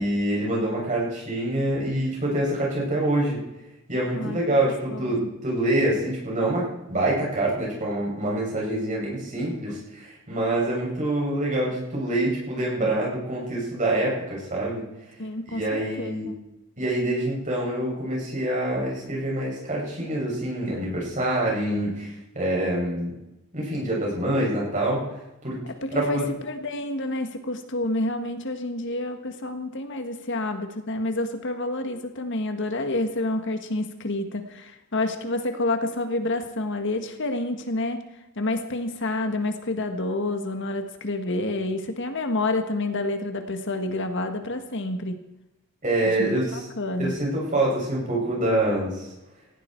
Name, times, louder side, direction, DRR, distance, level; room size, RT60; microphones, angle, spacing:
voice 1, 0.0-3.4 3.9-14.9 15.5-16.3 16.8-23.1 23.5-25.0 25.4-25.6 25.9-26.2 45.8-46.6 47.0-49.1, right 1 dB, 40° right, -4 dB, 7.6 m, -26 dB
voice 2, 4.1-5.3 15.2-16.4 25.8-38.0 38.3-45.2 46.0-47.1, left 2 dB, 60° left, 7 dB, 1.7 m, -29 dB
18.0 x 16.5 x 4.7 m, 0.95 s
head